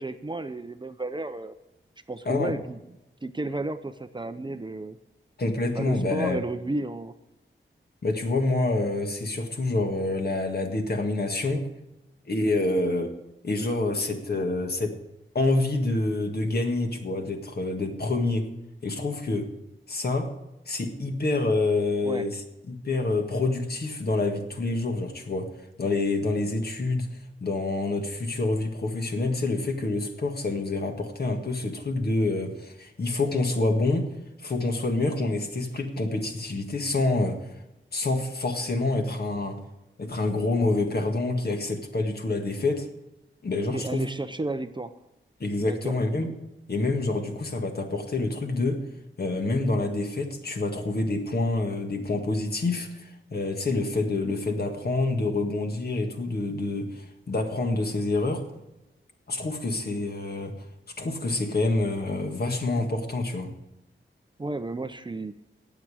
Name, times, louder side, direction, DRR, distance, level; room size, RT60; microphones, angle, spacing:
voice 1, 0.0-1.5 2.1-2.8 3.2-5.0 5.7-7.1 22.0-22.3 43.7-44.9 45.6-45.9 64.4-65.3, right 2 dB, 25° right, 10 dB, 0.6 m, -32 dB
voice 2, 2.2-2.6 5.4-6.4 8.0-11.6 12.3-13.1 13.4-15.0 15.3-18.5 18.8-19.5 19.9-20.3 20.7-22.4 22.7-25.5 25.8-27.1 27.4-34.1 34.4-37.5 37.9-39.6 40.0-42.9 43.4-44.0 45.4-46.3 46.7-48.8 49.2-58.4 59.3-60.5 61.0-63.5, left 2 dB, 50° left, 4 dB, 1.8 m, -27 dB
18.5 x 7.5 x 4.9 m, 0.94 s
wide cardioid pair, 130°, 20 cm